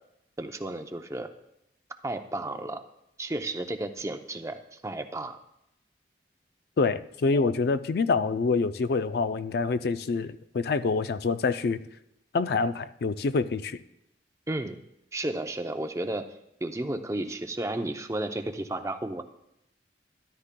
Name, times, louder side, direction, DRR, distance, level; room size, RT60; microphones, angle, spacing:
voice 1, 0.4-1.3 2.0-2.8 3.2-5.4 14.5-14.8 15.1-16.3 16.6-19.2, right 1 dB, 15° right, 7 dB, 0.5 m, -33 dB
voice 2, 6.8-11.8 12.3-13.8, left 4 dB, 60° left, 12 dB, 0.4 m, -26 dB
13.5 x 11.5 x 2.2 m, 0.83 s
head